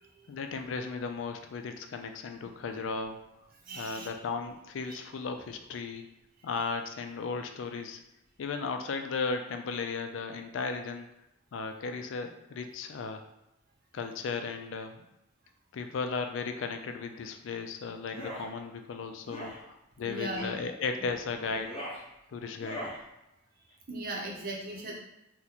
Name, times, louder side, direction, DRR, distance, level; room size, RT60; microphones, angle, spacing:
voice 1, 0.3-3.2 3.8-6.0 6.4-8.0 8.4-11.1 11.5-13.2 13.9-15.1 15.7-21.7 22.3-22.8, left 4 dB, 70° left, 6 dB, 0.3 m, -35 dB
voice 2, 3.6-4.1 4.9-5.0 6.4-6.5 20.0-20.7 23.9-25.0, right 1 dB, 50° right, -2 dB, 0.7 m, -38 dB
sound 1, 18.0-18.5 19.2-19.6 20.3-20.6 21.4-22.0 22.6-23.0, equal, 30° left, 0.7 m, -40 dB
2.9 x 2.1 x 3.9 m, 0.91 s
head